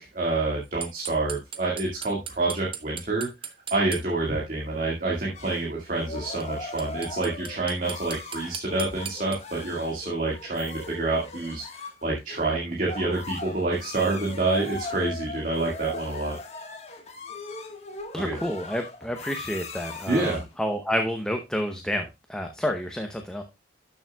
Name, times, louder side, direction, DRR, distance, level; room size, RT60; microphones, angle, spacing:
voice 1, 0.0-3.3 3.7-16.4 18.2-18.4 20.1-20.4, right 2 dB, 45° right, -3 dB, 1.9 m, -27 dB
sound 1, 0.8-4.0 6.4-6.5 6.8-9.4, right 8 dB, 30° right, 0.9 m, -36 dB
sound 2, 5.3-20.6, left 3 dB, 35° left, 1.4 m, -39 dB
voice 2, 18.1-23.4, equal, 5° left, 4 dB, 0.8 m, -29 dB
12.0 x 7.0 x 2.3 m, 0.23 s
head